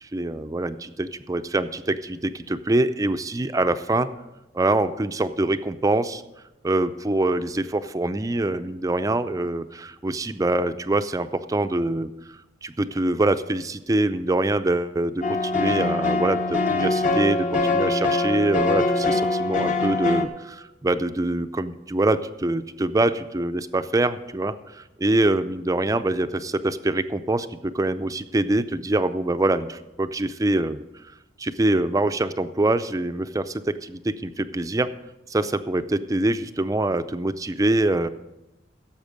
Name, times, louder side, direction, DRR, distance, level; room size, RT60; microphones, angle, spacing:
voice 1, 0.0-4.1 4.5-6.2 6.6-12.1 12.6-30.8 31.4-34.9 35.3-38.1, right 2 dB, 20° right, 11 dB, 0.4 m, -24 dB
sound 1, 15.2-20.3, left 3 dB, 45° left, 1.0 m, -23 dB
16.0 x 7.3 x 5.1 m, 1.0 s
head